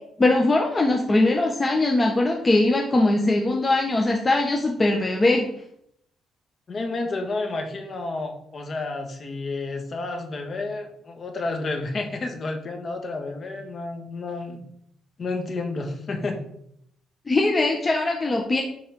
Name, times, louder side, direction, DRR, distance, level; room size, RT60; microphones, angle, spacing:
voice 1, 0.0-5.5 17.3-18.6, left 2 dB, 25° left, 1 dB, 1.2 m, -21 dB
voice 2, 6.7-14.7 15.2-16.4, left 3 dB, 45° left, 4 dB, 1.7 m, -30 dB
10.5 x 4.1 x 5.3 m, 0.72 s
cardioid pair, 90°, 0 cm